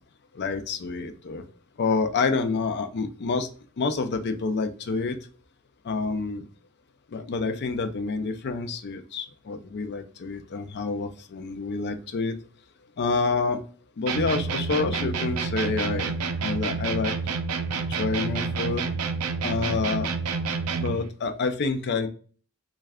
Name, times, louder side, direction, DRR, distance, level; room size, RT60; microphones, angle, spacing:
voice 1, 0.4-1.4 1.8-3.5 3.8-5.2 5.8-6.4 7.1-12.4 13.0-13.6 14.0-16.1 16.4-17.1 17.7-18.8 19.4-20.1 20.8-22.1, left 4 dB, 50° left, 8 dB, 0.4 m, -28 dB
sound 1, 14.1-21.0, right 4 dB, 80° right, 0.4 m, -29 dB
3.2 x 2.3 x 3.4 m, 0.42 s
head